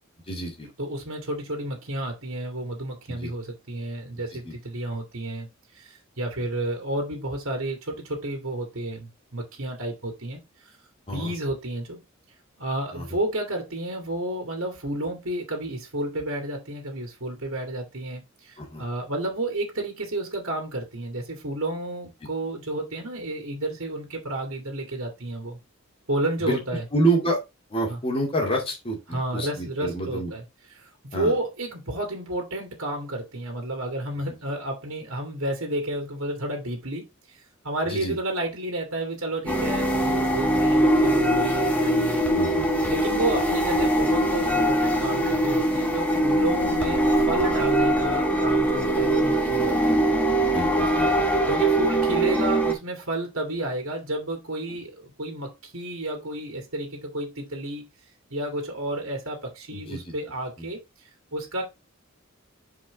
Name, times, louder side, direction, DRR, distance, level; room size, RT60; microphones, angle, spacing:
voice 1, 0.3-0.7 3.1-3.3 4.4-4.5 11.1-11.3 12.9-13.2 18.6-18.8 26.4-26.6 26.9-27.4 27.7-30.3 31.1-31.3 37.9-38.2 42.3-42.8 46.1-46.2 50.5-51.3 59.7-60.1 60.6-60.7, right 1 dB, 25° left, 2.4 m, -28 dB
voice 2, 0.8-5.5 5.7-10.4 10.6-10.8 11.1-12.0 12.6-25.6 26.1-26.8 27.9-28.0 29.1-30.4 30.8-42.3 42.9-50.0 51.5-57.9 58.3-60.8 61.3-61.6, right 1 dB, 75° right, 2.2 m, -31 dB
sound 1, 39.5-52.7, right 1 dB, 5° left, 1.4 m, -22 dB
5.6 x 4.9 x 4.0 m
head